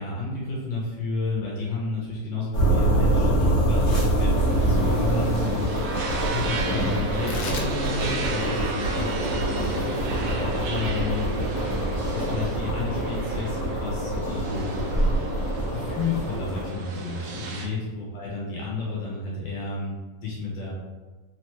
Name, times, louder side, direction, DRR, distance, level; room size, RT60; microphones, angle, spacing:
voice 1, 0.0-10.0 10.7-11.3 12.1-14.8 15.7-20.7, left 3 dB, 85° left, -5 dB, 1.6 m, -31 dB
sound 1, 2.5-16.7, right 1 dB, 45° left, 1.6 m, -25 dB
sound 2, 4.3-17.7, right 3 dB, 75° right, 1.2 m, -33 dB
Tearing, 7.1-13.8, left 3 dB, 65° left, 0.8 m, -41 dB
3.9 x 3.2 x 3.1 m, 1.3 s
omnidirectional pair, 1.9 m